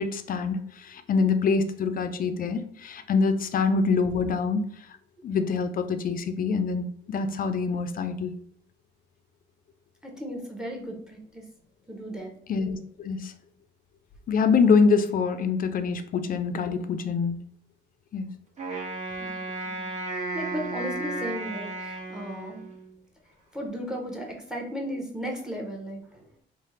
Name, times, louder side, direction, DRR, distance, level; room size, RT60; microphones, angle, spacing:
voice 1, 0.0-4.7 5.2-8.3 12.5-13.3 14.3-17.4 18.1-18.3, left 5 dB, 45° left, 9 dB, 0.4 m, -25 dB
voice 2, 10.0-11.4 11.9-12.3 19.2-22.6 23.5-26.3, equal, 5° right, 2 dB, 0.7 m, -36 dB
Wind instrument woodwind instrument, 18.6-23.0, right 2 dB, 35° right, 1.0 m, -34 dB
3.2 x 2.1 x 3.0 m, 0.64 s
cardioid pair, 90°, 20 cm